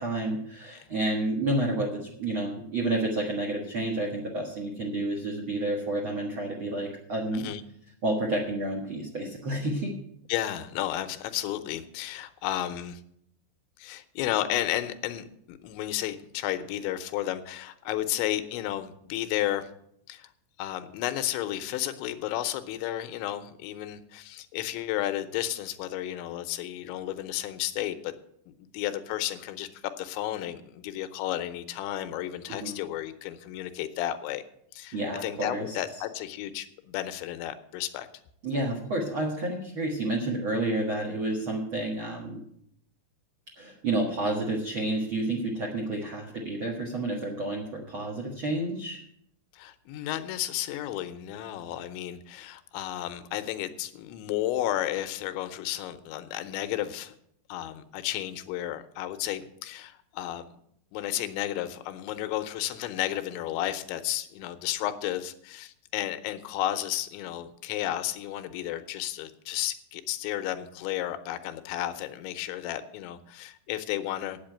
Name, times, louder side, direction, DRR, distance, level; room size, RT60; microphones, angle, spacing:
voice 1, 0.0-7.4 8.0-9.9 32.5-32.8 34.9-35.8 38.4-42.4 43.6-49.0, right 2 dB, 60° right, -2 dB, 1.3 m, -30 dB
voice 2, 10.3-13.0 13.8-19.7 20.1-20.3 20.6-28.1 28.5-29.7 30.0-34.4 34.7-35.0 35.2-38.1 49.5-57.2 57.5-60.4 60.9-74.4, left 13 dB, 90° left, 10 dB, 3.1 m, -32 dB
8.8 x 8.0 x 8.9 m, 0.70 s
omnidirectional pair, 5.1 m